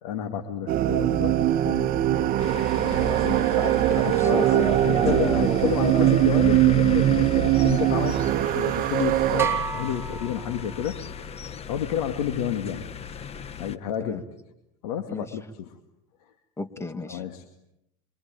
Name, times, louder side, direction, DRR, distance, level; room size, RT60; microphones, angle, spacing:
voice 1, 0.0-2.3 2.8-3.4 4.0-8.2 8.6-11.1 11.7-12.9 13.5-14.2 14.8-15.7 17.1-17.5, left 9 dB, 85° left, 6 dB, 2.3 m, -30 dB
sound 1, 0.7-9.5, right 14 dB, 50° right, 1.2 m, -22 dB
sound 2, 2.4-13.8, left 6 dB, 35° left, 1.5 m, -37 dB
voice 2, 2.9-6.1 14.0-14.2 15.1-15.3 16.6-17.2, left 2 dB, 15° left, 10 dB, 2.3 m, -33 dB
sound 3, 9.4-11.2, right 7 dB, 15° right, 4.5 m, -31 dB
27.0 x 24.0 x 9.1 m, 0.84 s
supercardioid pair, 105°, 19 cm